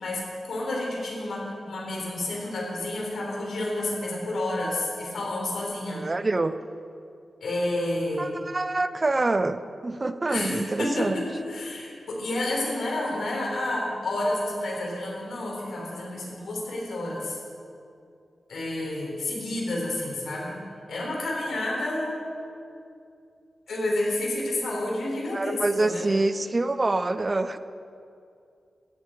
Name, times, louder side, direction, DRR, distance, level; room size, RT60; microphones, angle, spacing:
voice 1, 0.0-6.0 7.4-8.3 10.3-17.4 18.5-20.6 20.9-22.2 23.7-26.1, left 1 dB, 85° left, -3 dB, 4.5 m, -30 dB
voice 2, 5.9-6.5 8.2-11.2 25.3-27.6, right 2 dB, 30° right, 12 dB, 0.5 m, -26 dB
17.0 x 12.5 x 4.7 m, 2.5 s
wide cardioid pair, 110°, 0 cm